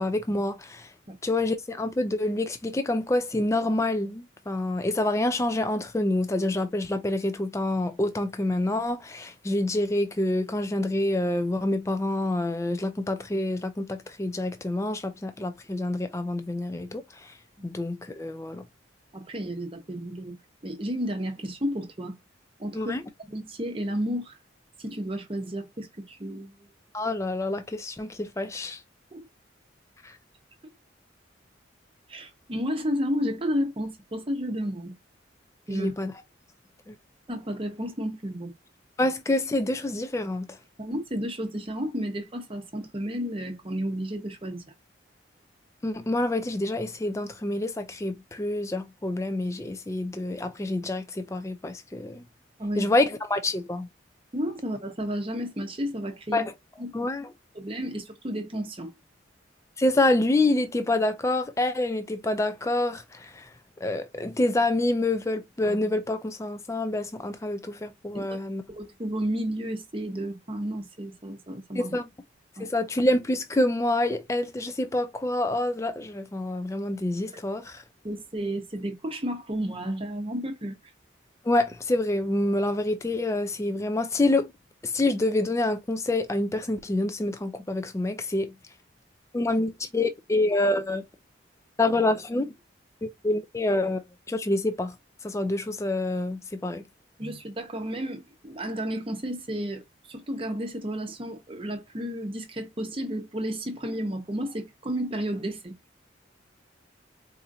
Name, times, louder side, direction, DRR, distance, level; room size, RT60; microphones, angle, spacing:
voice 1, 0.0-0.9 1.2-17.3 17.6-18.6 22.7-23.0 26.9-28.8 30.0-30.2 35.7-36.1 36.9-37.0 39.0-40.6 45.8-52.2 52.8-53.9 56.3-56.5 56.9-57.3 59.8-63.5 63.8-68.6 71.8-72.1 72.6-77.8 81.5-84.5 84.8-88.5 89.3-91.0 91.8-92.5 93.0-94.0 94.3-94.9 95.2-96.8, left 2 dB, 15° left, 0.3 m, -27 dB
voice 2, 19.1-20.3 20.6-22.2 22.6-22.9 23.3-24.4 24.8-26.5 29.1-29.3 32.1-34.9 35.7-35.9 37.3-38.5 40.8-44.6 52.6-52.9 54.3-56.5 56.8-57.1 57.5-58.9 68.1-68.2 68.7-71.9 72.6-72.7 77.3-77.4 78.0-80.7 97.2-99.8 100.1-105.7, equal, 30° right, 0.8 m, -32 dB
4.2 x 2.5 x 2.6 m
head